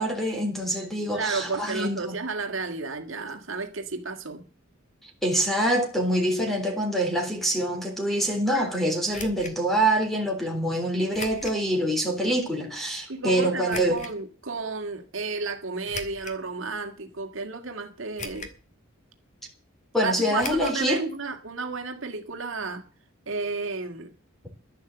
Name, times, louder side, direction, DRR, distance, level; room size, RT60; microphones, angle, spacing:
voice 1, 0.0-2.1 5.0-14.0 19.9-21.0, right 1 dB, ahead, 3.8 m, -25 dB
voice 2, 1.1-4.5 13.1-18.5 20.0-22.8 23.3-24.1, right 4 dB, 70° right, 1.9 m, -32 dB
sound 1, 9.1-9.6 11.1-11.6 12.2-12.3 13.7-14.1 15.8-16.4 17.1-17.2 18.2-18.7 18.9-19.0 20.4-20.8 21.1-21.2 21.5-21.6, left 3 dB, 35° left, 2.1 m, -38 dB
11.5 x 11.0 x 7.9 m
head